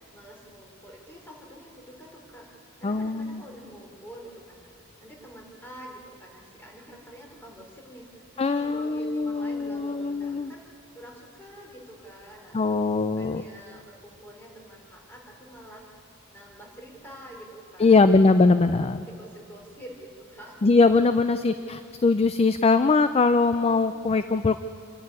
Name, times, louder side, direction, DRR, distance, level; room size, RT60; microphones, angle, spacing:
voice 1, 0.0-2.5 2.8-4.7 5.0-10.7 10.9-12.6 13.1-15.9 16.3-18.2 18.8-20.6 21.6-21.7, right 1 dB, 10° left, -1 dB, 3.7 m, -46 dB
voice 2, 2.8-3.4 8.4-10.5 12.5-13.4 17.8-19.0 20.6-24.6, left 3 dB, 25° left, 11 dB, 0.4 m, -21 dB
26.5 x 11.0 x 9.5 m, 2.5 s
head